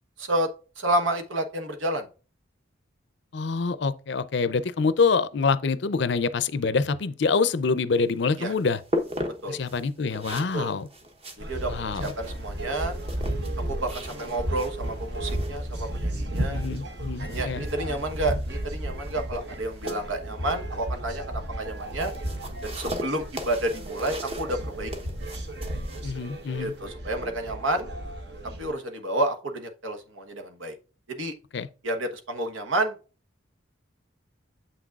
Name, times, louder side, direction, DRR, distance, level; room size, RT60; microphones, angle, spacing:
voice 1, 0.8-2.1 8.4-8.5 9.4-9.6 10.5-10.7 11.4-11.7 12.0-12.9 13.7-16.6 17.2-22.1 22.6-24.9 26.6-27.9 28.6-30.7 31.1-31.3 31.8-33.0, right 1 dB, 80° right, 1.2 m, -30 dB
voice 2, 3.3-8.8 9.5-10.9 11.7-12.1 16.5-17.6 26.0-26.7 31.5-31.7, left 4 dB, 60° left, 0.5 m, -26 dB
sound 1, 8.0-26.8, equal, 30° right, 1.0 m, -39 dB
sound 2, 11.4-28.7, right 1 dB, 55° right, 1.2 m, -34 dB
7.7 x 6.0 x 2.4 m
head